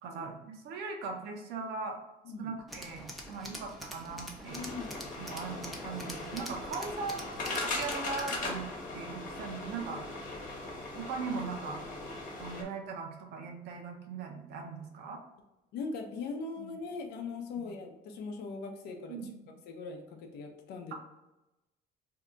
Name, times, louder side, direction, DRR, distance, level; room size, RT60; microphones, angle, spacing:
voice 1, 0.0-2.0 2.4-4.6 5.2-8.6 8.9-10.0 10.9-11.8 12.4-15.2 16.6-16.7 17.6-17.7 19.1-19.3, right 4 dB, 75° right, 3 dB, 0.6 m, -39 dB
voice 2, 2.2-2.6 3.3-3.5 4.5-5.0 15.7-19.2 19.7-20.9, left 4 dB, 80° left, 4 dB, 0.6 m, -40 dB
Tools, 2.7-8.5, equal, ahead, 0.6 m, -45 dB
sound 1, 4.4-12.6, left 2 dB, 50° left, 1.0 m, -39 dB
2.8 x 2.2 x 3.7 m, 0.97 s
cardioid pair, 110°, 17 cm